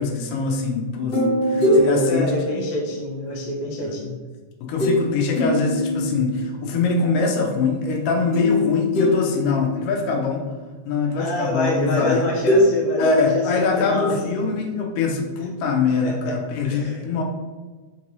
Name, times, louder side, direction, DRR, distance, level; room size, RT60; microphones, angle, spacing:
voice 1, 0.0-2.7 3.8-3.9 4.7-10.4 10.9-12.2 13.0-17.2, left 4 dB, 90° left, 1 dB, 1.3 m, -23 dB
sound 1, 1.1-3.4 4.8-5.1 5.4-6.6 8.3-10.0 12.0-14.2, left 1 dB, 45° left, 1.4 m, -23 dB
voice 2, 1.5-4.2 11.2-14.2 16.0-16.4 16.6-17.1, left 2 dB, 70° left, -1 dB, 1.8 m, -26 dB
4.4 x 3.0 x 2.6 m, 1.3 s
omnidirectional pair, 3.3 m